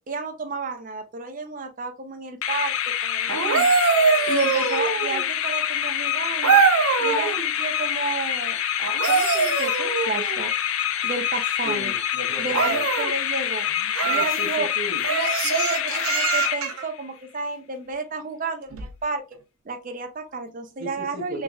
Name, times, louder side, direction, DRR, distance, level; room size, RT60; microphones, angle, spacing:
voice 1, 0.0-2.7 3.0-3.8 4.3-6.6 7.0-8.6 9.1-10.5 11.0-11.9 12.4-13.7 14.0-14.7 15.1-19.2 19.7-21.4, right 4 dB, 40° right, 0.5 m, -32 dB
sound 1, 2.4-17.1, left 10 dB, 75° left, 0.4 m, -26 dB
sound 2, 3.3-5.3 6.4-7.4 8.8-10.4 12.5-13.1 13.9-14.4 15.0-16.8 18.7-18.9, right 5 dB, 85° right, 0.6 m, -22 dB
voice 2, 11.6-12.9 13.7-15.0 20.8-21.4, right 1 dB, 65° right, 0.9 m, -36 dB
3.8 x 3.0 x 2.3 m
head